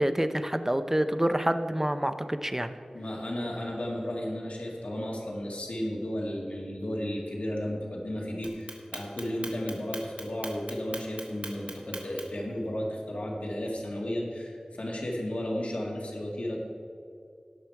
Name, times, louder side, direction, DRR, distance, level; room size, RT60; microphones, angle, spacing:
voice 1, 0.0-2.7, right 1 dB, 15° right, 10 dB, 0.6 m, -27 dB
voice 2, 2.9-16.6, left 1 dB, 75° left, -2 dB, 2.0 m, -33 dB
Clock, 8.4-12.4, right 2 dB, 75° right, 1.4 m, -40 dB
18.0 x 6.2 x 4.6 m, 2.4 s
wide cardioid pair, 60°, 2 cm